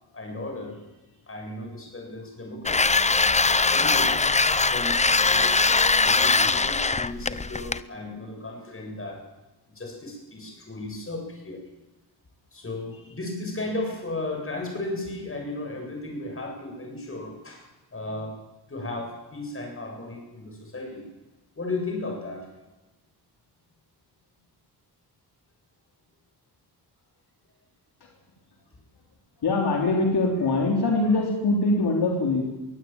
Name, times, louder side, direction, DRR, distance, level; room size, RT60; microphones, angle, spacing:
voice 1, 0.1-0.9 1.3-2.9 3.7-5.6 6.0-9.3 9.7-11.6 12.5-18.4 18.7-21.1 21.6-22.5, left 2 dB, 35° left, 2 dB, 7.8 m, -35 dB
sound 1, 2.7-7.8, left 4 dB, 15° left, 0.6 m, -21 dB
voice 2, 29.4-32.4, left 2 dB, 75° left, 0 dB, 3.7 m, -23 dB
22.5 x 16.5 x 9.0 m, 1.1 s
cardioid pair, 90°, 39 cm